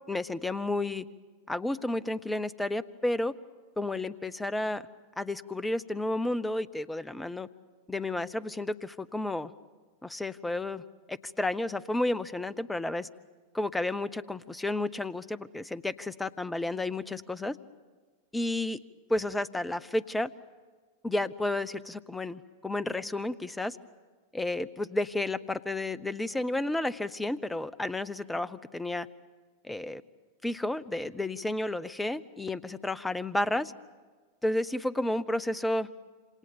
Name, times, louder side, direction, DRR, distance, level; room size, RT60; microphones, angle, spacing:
voice 1, 0.1-1.1 1.5-3.3 3.8-4.8 5.2-7.5 7.9-9.5 10.0-10.8 11.1-13.1 13.5-17.6 18.3-18.8 19.1-20.3 21.0-23.8 24.3-29.1 29.6-30.0 30.4-33.7 34.4-35.9, left 2 dB, 5° left, 18 dB, 0.7 m, -31 dB
27.0 x 26.5 x 7.2 m, 1.4 s
figure-of-eight pair, 90°, 0 cm